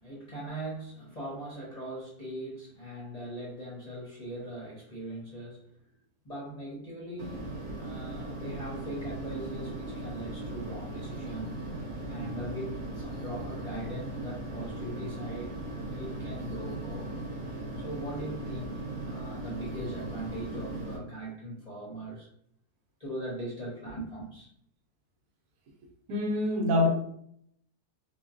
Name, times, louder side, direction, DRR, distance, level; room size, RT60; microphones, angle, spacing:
voice 1, 0.0-5.6 6.2-7.4 7.8-11.6 12.1-15.5 15.9-17.1 17.8-22.3 23.0-24.5, right 1 dB, 40° left, 0.6 m, -40 dB
sound 1, 7.2-21.0, right 2 dB, 55° right, 0.6 m, -38 dB
voice 2, 26.1-26.9, left 2 dB, 90° right, 1.2 m, -25 dB
3.6 x 2.2 x 2.4 m
omnidirectional pair, 1.6 m